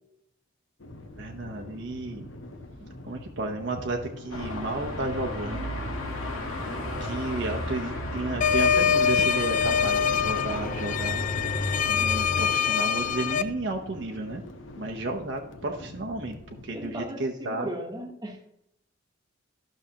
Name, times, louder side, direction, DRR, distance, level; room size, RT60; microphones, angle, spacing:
sound 1, 0.8-17.0, left 1 dB, 70° left, 1.0 m, -43 dB
voice 1, 1.2-2.3 3.0-5.7 7.0-11.4 11.8-14.4 14.8-17.7, right 2 dB, 60° right, 1 dB, 0.8 m, -32 dB
Car passing by / Traffic noise roadway noise / Engine, 4.3-12.4, left 1 dB, 90° left, 1.8 m, -34 dB
sound 2, 8.4-13.4, left 7 dB, 40° left, 0.4 m, -24 dB
voice 2, 16.7-18.4, equal, 20° right, 1 dB, 1.1 m, -36 dB
12.0 x 6.3 x 2.8 m, 0.81 s
head